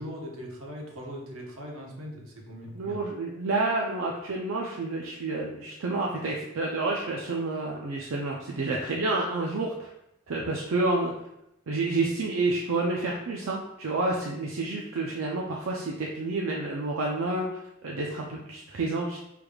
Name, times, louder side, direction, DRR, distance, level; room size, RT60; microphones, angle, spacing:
voice 1, 0.0-3.0, equal, 90° right, -2 dB, 1.0 m, -40 dB
voice 2, 2.7-9.9 10.3-11.1 11.7-19.2, right 2 dB, 70° right, -1 dB, 0.5 m, -29 dB
4.8 x 3.4 x 2.3 m, 0.83 s
head